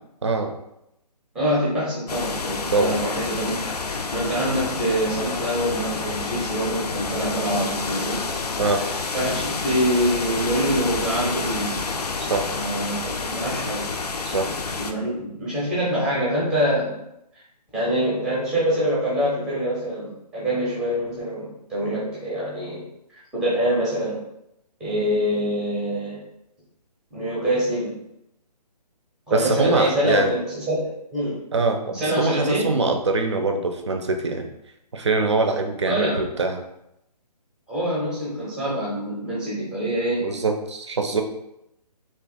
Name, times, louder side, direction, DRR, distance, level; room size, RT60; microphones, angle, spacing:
voice 1, 0.2-0.5 2.7-2.9 8.6-8.8 12.3-12.5 14.2-14.5 15.0-15.1 29.3-30.3 31.5-34.5 34.9-36.6 40.2-41.2, right 3 dB, 45° right, 5 dB, 0.5 m, -23 dB
voice 2, 1.3-8.2 8.8-11.8 12.5-13.8 14.8-17.0 17.7-22.9 23.1-24.2 24.8-26.2 27.1-27.9 29.3-31.4 31.9-32.6 35.9-36.2 37.7-40.2, equal, 5° right, -7 dB, 0.6 m, -25 dB
sound 1, 2.1-14.9, left 4 dB, 70° left, 0.4 m, -29 dB
3.0 x 2.7 x 3.7 m, 0.82 s
figure-of-eight pair, 140°, 21 cm